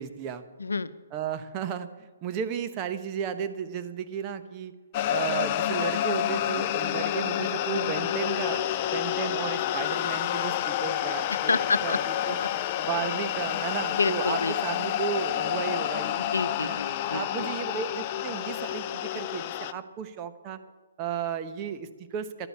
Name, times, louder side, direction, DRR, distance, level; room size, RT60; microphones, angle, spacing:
voice 1, 0.0-0.4 1.1-4.7 5.1-12.4 12.8-16.2 16.6-16.8 17.1-20.6 21.0-22.5, right 8 dB, 25° right, 9 dB, 1.0 m, -34 dB
voice 2, 0.6-0.9 11.3-12.0 12.2-12.3 13.9-14.5 16.2-17.5, left 4 dB, 80° left, 14 dB, 0.7 m, -28 dB
sound 1, 4.9-19.7, left 11 dB, 35° left, 0.6 m, -29 dB
12.0 x 9.6 x 8.5 m, 1.3 s
figure-of-eight pair, 140°, 0 cm